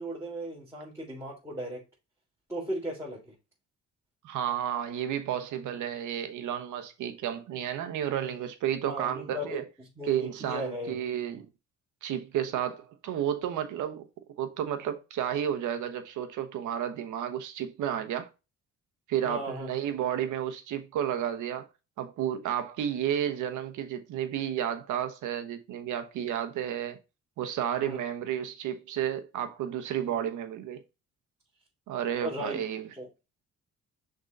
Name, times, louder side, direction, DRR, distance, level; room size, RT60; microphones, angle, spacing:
voice 1, 0.0-1.8 2.5-3.3 8.8-9.6 10.0-10.9 19.2-19.7 27.8-28.0 32.2-32.6 33.0-33.1, equal, 10° right, 3.4 m, -36 dB
voice 2, 4.2-9.6 10.0-11.5 12.0-14.1 14.4-18.3 19.1-21.7 22.0-27.0 27.4-30.8 31.9-32.9, right 10 dB, 85° right, 1.0 m, -32 dB
6.2 x 3.9 x 3.9 m
cardioid pair, 90°, 30 cm